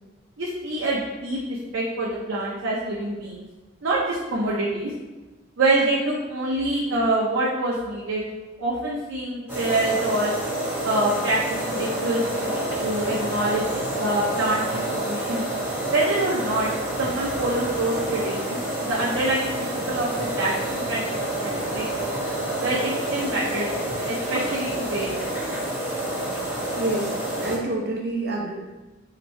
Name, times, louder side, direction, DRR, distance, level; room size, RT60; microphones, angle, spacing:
voice 1, 0.4-3.4 3.8-4.9 5.6-8.2 8.6-10.3 10.8-12.5 12.8-15.4 15.9-16.7 17.0-18.6 18.8-21.0 21.4-22.0 22.6-23.7 24.0-25.1, right 2 dB, 90° right, -5 dB, 0.6 m, -26 dB
sound 1, 9.5-27.6, right 1 dB, 15° right, 1.1 m, -28 dB
voice 2, 26.7-28.5, right 2 dB, 55° right, -3 dB, 0.8 m, -27 dB
2.9 x 2.6 x 4.3 m, 1.2 s
head